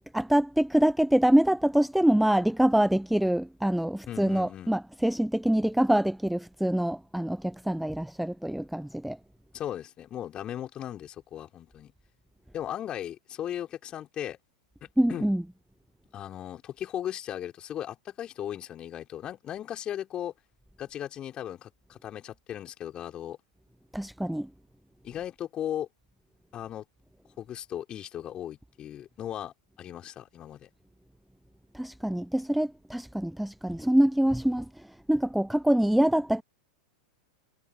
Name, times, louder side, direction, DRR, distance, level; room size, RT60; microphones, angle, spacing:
voice 1, 0.1-9.2 15.0-15.4 23.9-24.5 31.7-36.4, right 1 dB, ahead, 0.5 m, -25 dB
voice 2, 4.1-4.7 9.5-11.9 12.5-14.4 14.8-15.3 16.1-20.3 20.8-23.4 25.0-25.9 26.5-26.9 27.4-30.7, left 11 dB, 30° left, 5.4 m, -37 dB
figure-of-eight pair, 95°, 3 cm